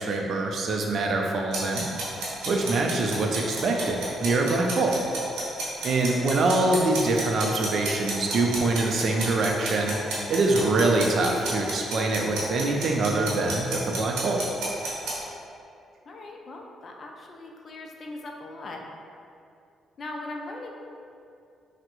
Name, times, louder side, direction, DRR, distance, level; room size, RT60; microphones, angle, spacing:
voice 1, 0.0-1.9 2.5-5.0 5.8-10.0 10.3-14.4, right 2 dB, 60° right, 1 dB, 0.4 m, -24 dB
sound 1, 1.5-15.1, right 3 dB, 90° right, 0.7 m, -32 dB
voice 2, 16.1-18.8 20.0-20.7, left 2 dB, 45° left, 1 dB, 0.3 m, -39 dB
3.4 x 2.0 x 2.9 m, 2.6 s
cardioid pair, 90°, 0 cm